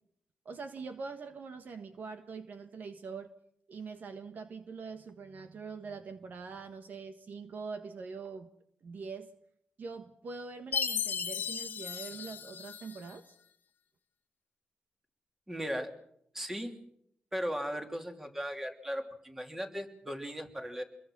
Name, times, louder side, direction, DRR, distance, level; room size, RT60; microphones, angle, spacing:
voice 1, 0.4-3.3 3.7-8.5 8.8-9.3 9.8-13.3, right 4 dB, 55° right, 8 dB, 1.5 m, -43 dB
Chime, 10.7-13.2, left 7 dB, 60° left, 1.5 m, -35 dB
voice 2, 15.5-15.9 16.3-16.8 17.3-20.8, equal, 10° right, 4 dB, 2.9 m, -37 dB
27.0 x 22.0 x 6.2 m, 0.72 s
wide cardioid pair, 140°, 4 cm